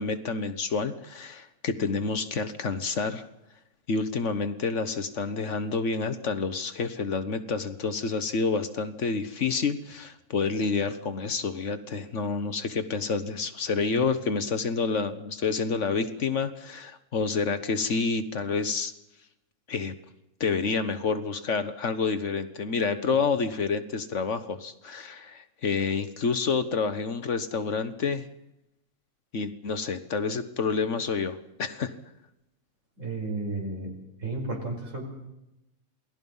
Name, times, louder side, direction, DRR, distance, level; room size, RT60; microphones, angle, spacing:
voice 1, 0.0-3.3 3.9-18.9 19.7-19.9 20.4-28.2 29.3-31.9, left 4 dB, 60° left, 11 dB, 1.4 m, -28 dB
voice 2, 33.0-33.9 34.2-35.0, right 2 dB, 60° right, 1 dB, 5.5 m, -32 dB
27.5 x 19.0 x 5.5 m, 0.89 s
omnidirectional pair, 1.5 m